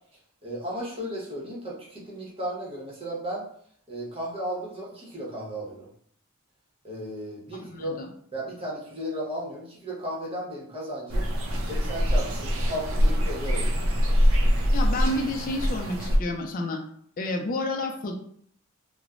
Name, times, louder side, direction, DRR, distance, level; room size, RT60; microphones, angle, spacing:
voice 1, 0.4-3.4 3.9-5.9 6.8-8.0 8.3-11.3 11.7-14.1, equal, 25° right, -5 dB, 0.8 m, -35 dB
voice 2, 7.5-8.1 14.7-16.8 17.2-18.2, left 2 dB, 40° left, 3 dB, 0.3 m, -30 dB
sound 1, 11.1-16.2, equal, 70° right, 0.5 m, -24 dB
3.1 x 2.0 x 2.4 m, 0.62 s
head